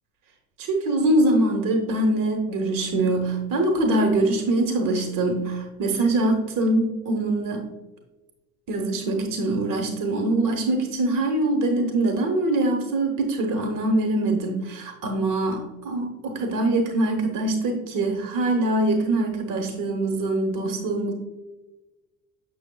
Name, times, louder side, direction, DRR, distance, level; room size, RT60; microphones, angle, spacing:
voice 1, 0.6-7.6 8.7-21.1, right 2 dB, 50° right, 3 dB, 1.1 m, -23 dB
6.9 x 6.5 x 2.2 m, 1.1 s
supercardioid pair, 90°, 40 cm